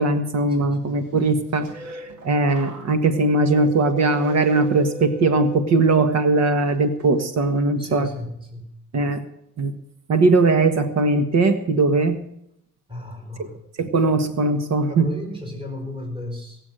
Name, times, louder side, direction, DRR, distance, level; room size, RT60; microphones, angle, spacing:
voice 1, 0.0-8.1 8.9-9.2 9.6-9.7 10.1-12.2 13.4-13.5 13.8-15.1, right 3 dB, 60° right, 10 dB, 1.5 m, -20 dB
voice 2, 0.6-1.0 7.8-8.7 12.9-13.6 14.9-16.6, left 1 dB, 15° right, 3 dB, 4.9 m, -34 dB
sound 1, 1.2-6.2 6.6-7.1, right 3 dB, 90° right, 2.4 m, -39 dB
18.0 x 7.3 x 9.0 m, 0.77 s
cardioid pair, 90°, 30 cm